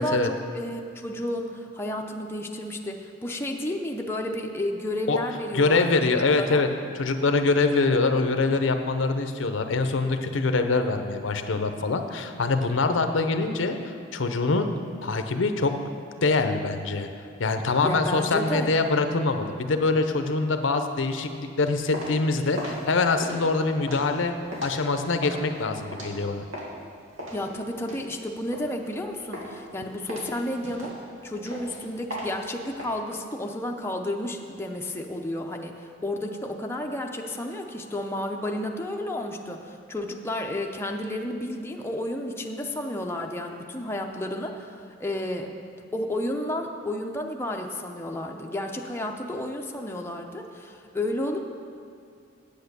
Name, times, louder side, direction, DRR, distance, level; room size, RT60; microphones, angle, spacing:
voice 1, 0.0-6.7 17.8-18.7 27.3-30.9 31.2-45.5 45.9-51.4, left 1 dB, 10° left, 1 dB, 0.6 m, -32 dB
voice 2, 5.5-6.7 6.9-14.7 15.0-15.7 16.2-17.1 17.4-24.3 24.6-26.4, left 3 dB, 70° left, 7 dB, 0.7 m, -24 dB
sound 1, 21.6-26.8 27.2-29.0 29.3-29.7 30.1-32.9, equal, 85° right, 2.1 m, -38 dB
8.4 x 8.4 x 6.7 m, 2.5 s
head